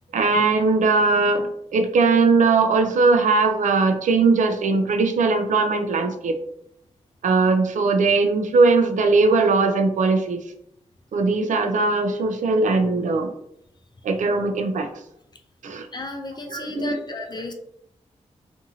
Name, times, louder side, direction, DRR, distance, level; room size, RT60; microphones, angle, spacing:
voice 1, 0.1-6.4 7.2-10.5 11.1-13.3 14.0-14.9 15.6-15.9 16.5-16.9, right 3 dB, 80° right, 6 dB, 0.4 m, -20 dB
voice 2, 15.9-17.5, left 2 dB, 35° left, 4 dB, 0.4 m, -33 dB
2.6 x 2.6 x 2.7 m, 0.76 s
cardioid pair, 65°, 13 cm